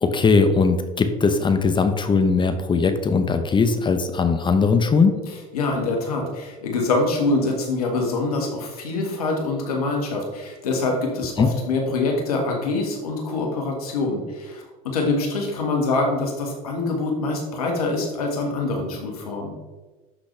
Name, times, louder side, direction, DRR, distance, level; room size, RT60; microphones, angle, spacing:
voice 1, 0.0-5.2 11.4-11.5, left 4 dB, 25° left, 8 dB, 0.8 m, -19 dB
voice 2, 5.5-19.5, left 3 dB, 90° left, 1 dB, 1.7 m, -25 dB
11.5 x 4.1 x 3.3 m, 1.2 s
hypercardioid pair, 85°, 19 cm